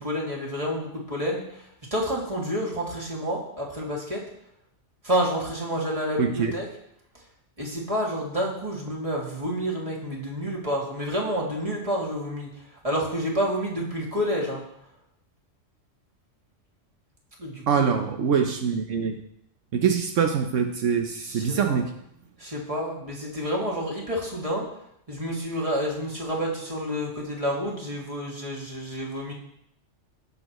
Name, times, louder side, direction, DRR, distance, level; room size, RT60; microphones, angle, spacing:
voice 1, 0.0-4.2 5.0-6.7 7.6-12.5 12.8-14.6 17.4-17.8 21.2-21.8 22.4-24.7 25.1-29.3, equal, 30° right, -3 dB, 2.3 m, -29 dB
voice 2, 6.2-6.5 17.7-19.2 19.7-21.9, right 6 dB, 75° right, 4 dB, 1.1 m, -24 dB
18.5 x 6.7 x 3.1 m, 0.75 s
omnidirectional pair, 1.3 m